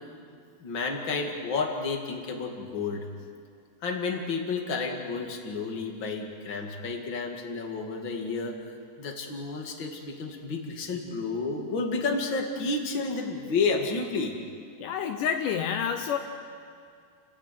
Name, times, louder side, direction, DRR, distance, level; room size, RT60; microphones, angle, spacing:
voice 1, 0.6-3.0 3.8-8.6 9.0-14.4, left 4 dB, 35° left, 2 dB, 2.1 m, -31 dB
voice 2, 14.8-16.2, left 8 dB, 85° left, 5 dB, 1.8 m, -28 dB
29.5 x 15.0 x 9.2 m, 2.3 s
omnidirectional pair, 5.0 m